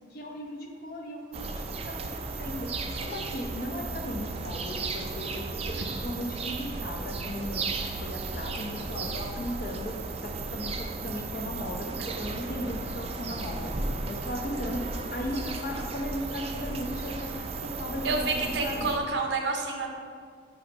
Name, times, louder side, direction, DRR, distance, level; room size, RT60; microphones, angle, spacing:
voice 1, 0.1-2.7 3.0-10.0 10.2-13.7 14.1-14.8 15.1-17.3 17.6-18.9, left 1 dB, 55° left, 2 dB, 0.9 m, -36 dB
sound 1, 1.3-19.0, right 3 dB, 35° right, 0.5 m, -35 dB
voice 2, 18.0-19.9, right 3 dB, 65° right, 3 dB, 0.8 m, -29 dB
8.8 x 3.0 x 5.2 m, 2.1 s
head